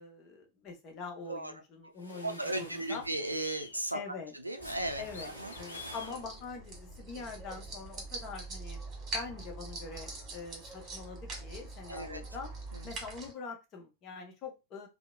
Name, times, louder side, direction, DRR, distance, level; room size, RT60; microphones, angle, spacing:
voice 1, 0.0-3.0 3.9-4.3 5.0-8.8 9.1-12.5 12.8-14.9, left 4 dB, 35° left, 3 dB, 0.8 m, -44 dB
sound 1, 1.9-6.6, equal, 85° left, 0.7 m, -49 dB
sound 2, 2.1-2.2 2.9-3.8 5.0-6.2, left 5 dB, 65° left, 0.3 m, -48 dB
voice 2, 2.2-4.0 4.4-5.5 11.9-12.2 12.7-12.9, right 1 dB, 85° right, 7 dB, 0.4 m, -36 dB
sound 3, 4.6-13.3, right 2 dB, 30° right, 1.3 m, -44 dB
2.8 x 2.1 x 2.3 m, 0.26 s
figure-of-eight pair, 90°, 0 cm